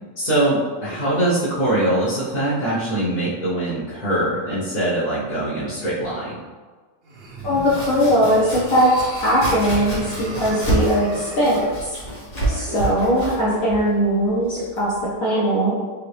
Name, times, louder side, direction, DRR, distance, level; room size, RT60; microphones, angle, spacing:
voice 1, 0.2-6.4, right 1 dB, 35° left, -11 dB, 0.8 m, -22 dB
sound 1, 7.0-11.8, right 1 dB, 55° right, 0.7 m, -36 dB
Domestic sounds home sounds, 7.4-15.1, right 1 dB, 80° left, 2.3 m, -29 dB
voice 2, 7.4-11.9 12.5-14.9 15.2-15.7, equal, 60° left, -8 dB, 1.2 m, -20 dB
4.8 x 2.8 x 3.2 m, 1.4 s
omnidirectional pair, 1.8 m